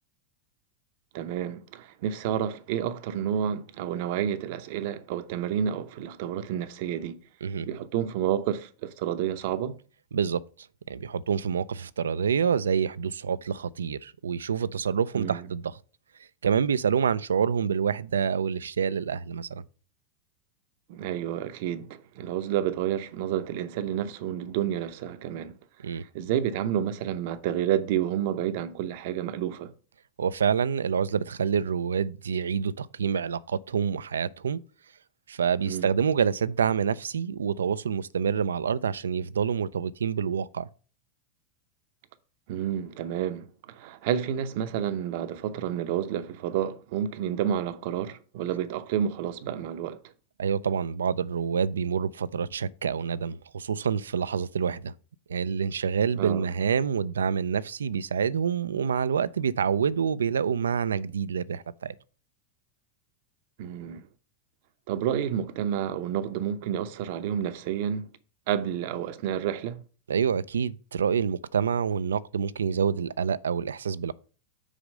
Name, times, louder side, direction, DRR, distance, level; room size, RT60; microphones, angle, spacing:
voice 1, 1.1-7.2 7.6-9.8 15.1-15.5 20.9-25.5 26.1-29.7 35.6-35.9 42.5-50.0 56.2-56.5 63.6-64.0 64.9-68.1 68.5-69.8, right 9 dB, 60° right, 0.7 m, -30 dB
voice 2, 10.9-15.6 16.4-19.6 25.8-26.0 30.2-34.6 35.3-40.7 50.4-54.9 55.3-61.9 70.1-74.1, right 7 dB, 85° right, 0.3 m, -27 dB
5.0 x 4.9 x 6.3 m
hypercardioid pair, 95°, 0 cm